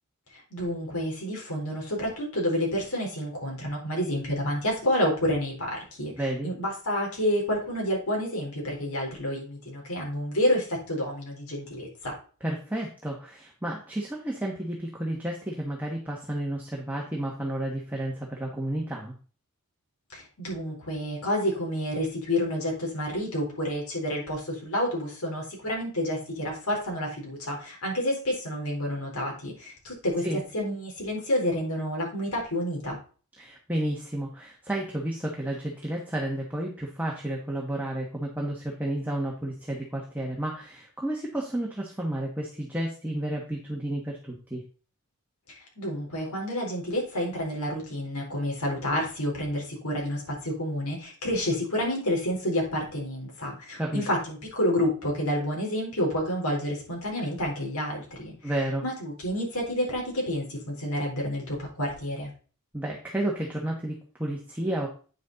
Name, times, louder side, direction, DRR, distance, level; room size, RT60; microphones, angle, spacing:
voice 1, 0.3-6.1 6.4-12.1 20.1-33.0 45.6-58.5 58.8-62.3, left 1 dB, 80° left, -1 dB, 4.0 m, -29 dB
voice 2, 6.2-6.5 12.4-19.1 30.2-30.4 33.4-44.6 53.7-54.0 58.4-58.8 62.7-64.9, right 1 dB, 5° right, -2 dB, 1.3 m, -31 dB
9.0 x 6.2 x 4.0 m, 0.39 s
head